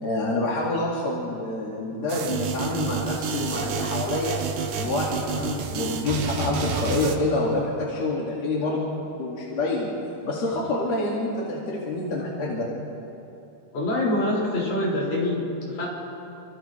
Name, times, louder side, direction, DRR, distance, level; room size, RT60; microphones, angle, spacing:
voice 1, 0.0-4.4 4.8-8.8 9.1-9.9 10.2-12.7, left 2 dB, 50° left, -5 dB, 3.5 m, -27 dB
sound 1, 2.1-7.1, right 5 dB, 75° right, 2.9 m, -29 dB
voice 2, 13.7-15.9, left 1 dB, 70° left, -5 dB, 7.7 m, -25 dB
30.0 x 25.5 x 3.4 m, 3.0 s
omnidirectional pair, 4.0 m